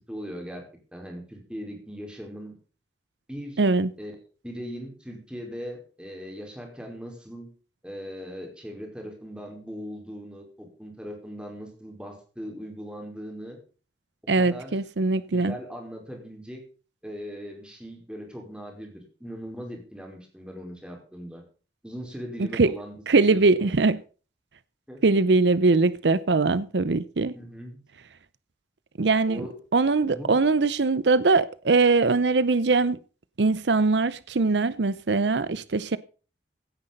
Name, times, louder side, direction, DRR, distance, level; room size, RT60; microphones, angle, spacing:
voice 1, 0.1-0.6 0.9-2.5 3.3-3.6 4.0-4.1 4.4-7.5 7.8-13.6 14.4-14.7 15.3-16.6 17.0-21.4 21.8-23.8 24.9-25.0 27.2-27.8 29.3-29.5 30.0-30.3, equal, 5° right, 4.9 m, -39 dB
voice 2, 3.6-3.9 14.3-15.5 22.4-22.7 23.1-24.0 25.0-27.3 29.0-29.5 29.7-33.0 33.4-36.0, right 3 dB, 75° right, 0.7 m, -21 dB
16.5 x 9.9 x 5.4 m
head